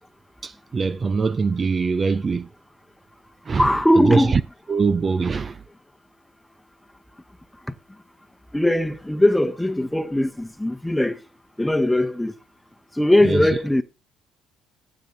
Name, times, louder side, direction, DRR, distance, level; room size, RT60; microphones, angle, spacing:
voice 1, 0.4-2.5 3.4-4.4 4.7-5.6 13.2-13.5, right 4 dB, 35° right, 0.6 m, -22 dB
voice 2, 3.5-4.4 8.5-11.2 11.6-12.3 13.0-13.8, left 1 dB, 5° left, 1.1 m, -20 dB
15.0 x 7.5 x 4.0 m
hypercardioid pair, 60°, 0 cm